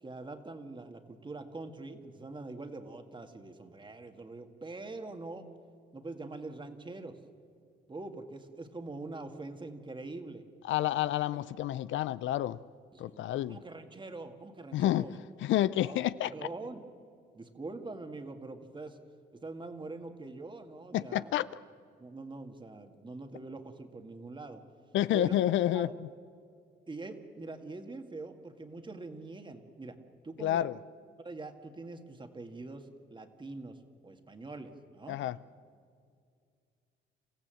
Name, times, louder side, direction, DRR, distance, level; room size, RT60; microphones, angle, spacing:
voice 1, 0.0-5.5 5.9-7.2 7.9-10.5 12.9-15.2 15.8-16.0 16.3-16.8 17.3-19.0 19.3-21.4 22.0-24.6 25.1-25.4 25.7-26.0 26.9-30.0 30.2-30.6 31.2-33.8 34.0-35.2, right 3 dB, 25° right, 1.9 m, -44 dB
voice 2, 10.6-12.6 13.0-13.6 14.7-16.3 20.9-21.5 24.9-26.1 30.4-30.8 35.1-35.4, left 13 dB, 75° left, 0.5 m, -29 dB
29.0 x 15.0 x 7.7 m
cardioid pair, 90°, 20 cm